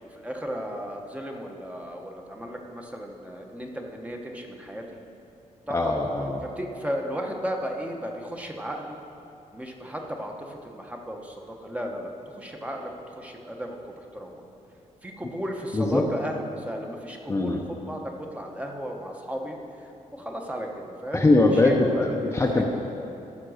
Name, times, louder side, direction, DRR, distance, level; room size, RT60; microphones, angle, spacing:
voice 1, 0.0-5.0 5.7-6.0 6.6-9.0 9.5-14.4 15.0-21.3 21.5-22.3, equal, 10° right, 1 dB, 0.9 m, -35 dB
voice 2, 5.7-6.4 15.7-16.0 17.3-17.6 21.1-22.6, left 2 dB, 20° left, 0 dB, 0.7 m, -22 dB
14.5 x 5.9 x 6.4 m, 2.8 s
wide cardioid pair, 165°, 14 cm